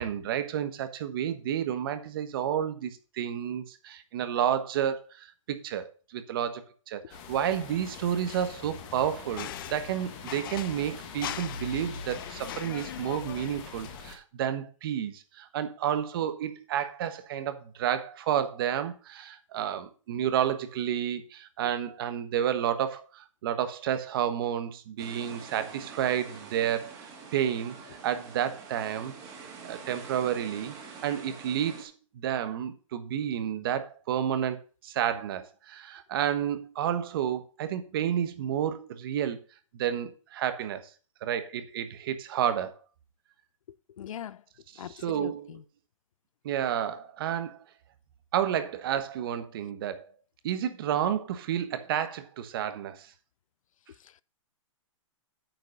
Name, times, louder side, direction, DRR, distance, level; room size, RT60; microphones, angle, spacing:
voice 1, 0.0-29.1 29.6-39.4 39.7-40.8 41.2-42.8 44.7-45.5 46.4-47.6 48.3-50.1 50.4-53.1, right 10 dB, 45° right, 1.3 m, -31 dB
sound 1, 7.1-14.1, left 5 dB, 25° left, 1.5 m, -43 dB
sound 2, 7.9-14.0, left 12 dB, 40° left, 0.6 m, -42 dB
sound 3, 25.0-31.8, right 5 dB, 20° right, 2.6 m, -46 dB
voice 2, 44.0-44.4 44.8-45.6 54.0-54.2, left 10 dB, 90° left, 0.5 m, -41 dB
9.0 x 5.2 x 6.5 m
hypercardioid pair, 165°, 17 cm